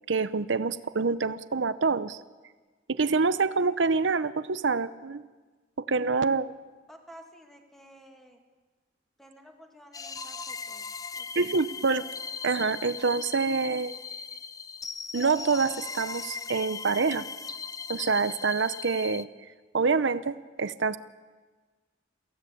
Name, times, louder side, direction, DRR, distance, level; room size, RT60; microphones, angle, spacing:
voice 1, 0.1-2.2 2.9-5.2 5.8-6.5 11.4-12.1 12.4-13.9 15.1-17.3 17.9-19.3 19.7-21.0, right 4 dB, 70° right, 14 dB, 0.7 m, -26 dB
voice 2, 6.9-8.4 9.2-11.7, equal, ahead, 3 dB, 2.4 m, -52 dB
sound 1, 9.9-19.2, left 5 dB, 20° left, 0.6 m, -39 dB
23.0 x 15.5 x 8.5 m, 1.3 s
head